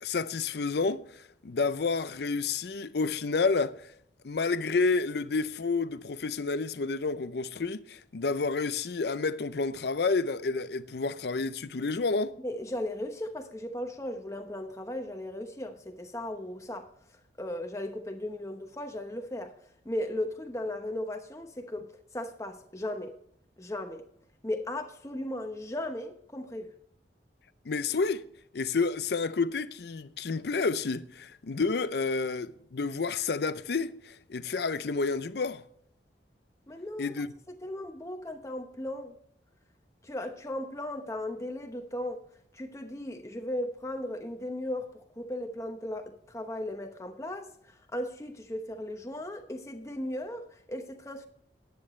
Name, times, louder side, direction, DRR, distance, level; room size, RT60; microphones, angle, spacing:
voice 1, 0.0-3.9 4.2-12.3 27.7-28.3 28.5-35.6 37.0-37.3, left 4 dB, 60° left, 0.5 m, -30 dB
voice 2, 12.4-16.9 17.4-19.5 19.8-23.2 23.6-24.1 24.4-26.7 36.7-39.1 40.0-42.2 42.5-51.3, left 1 dB, 15° left, 1.0 m, -36 dB
13.5 x 9.4 x 3.2 m
head